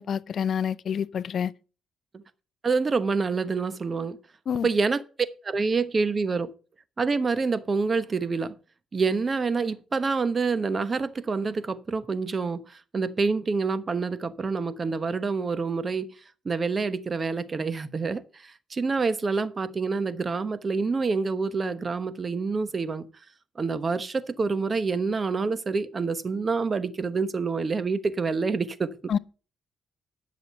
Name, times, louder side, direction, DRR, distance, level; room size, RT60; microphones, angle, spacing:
voice 1, 0.0-1.5 4.5-4.7 29.1-29.2, left 8 dB, 55° left, 0.5 m, -27 dB
voice 2, 2.6-4.2 4.6-5.0 5.4-6.5 7.0-8.5 8.9-16.1 16.4-23.1 23.6-28.9, right 4 dB, 35° right, 1.0 m, -27 dB
11.0 x 6.4 x 6.7 m
cardioid pair, 90°, 0 cm